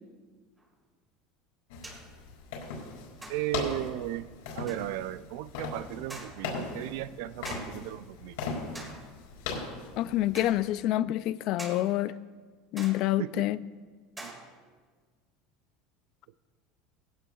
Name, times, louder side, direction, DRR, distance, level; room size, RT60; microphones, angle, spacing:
sound 1, 0.6-0.7 1.8-2.2 3.2-3.7 4.7-5.0 6.1-6.6 7.4-7.9 8.7-9.2 10.3-10.6 11.6-11.9 12.8-13.3 14.2-14.8, right 2 dB, 10° right, 2.2 m, -45 dB
sound 2, 1.7-10.7, left 4 dB, 85° left, 4.7 m, -39 dB
voice 1, 3.3-4.3 4.5-8.4 13.2-13.5 14.2-14.3, right 14 dB, 70° right, 0.4 m, -35 dB
voice 2, 9.9-12.1 12.7-13.6, left 14 dB, 45° left, 0.4 m, -27 dB
20.0 x 16.0 x 2.4 m
cardioid pair, 170°, 0 cm